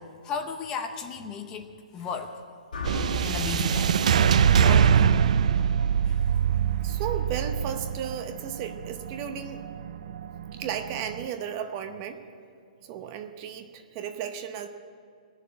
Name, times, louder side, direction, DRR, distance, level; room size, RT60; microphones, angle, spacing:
voice 1, 0.0-2.4 3.2-3.9 4.6-5.1 6.1-6.2, left 6 dB, 15° left, 6 dB, 0.7 m, -35 dB
sound 1, 2.7-6.9, left 3 dB, 75° left, 3.1 m, -37 dB
sound 2, 2.8-11.2, right 7 dB, 55° right, 0.4 m, -24 dB
voice 2, 6.8-9.6 10.5-12.2 12.8-14.7, right 8 dB, 25° right, 8 dB, 0.7 m, -34 dB
19.0 x 7.1 x 9.6 m, 2.4 s
hypercardioid pair, 170°, 5 cm